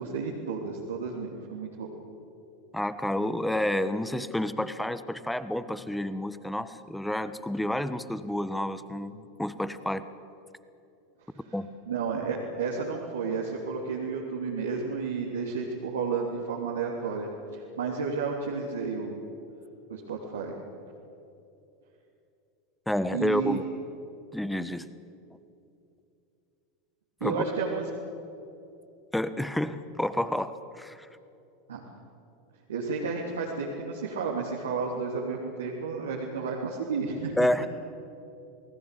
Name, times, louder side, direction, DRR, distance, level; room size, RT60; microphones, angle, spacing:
voice 1, 0.0-1.9 11.3-11.5 11.8-19.2 19.9-20.5 23.1-23.6 27.2-27.8 31.7-31.8 32.7-37.4, right 5 dB, 70° right, -2 dB, 3.1 m, -32 dB
voice 2, 2.7-10.1 11.5-11.7 22.9-23.6 24.3-24.9 27.2-27.4 29.1-31.1 37.4-37.7, left 1 dB, 5° left, 13 dB, 1.4 m, -29 dB
29.5 x 19.5 x 8.5 m, 2.7 s
figure-of-eight pair, 85°, 0 cm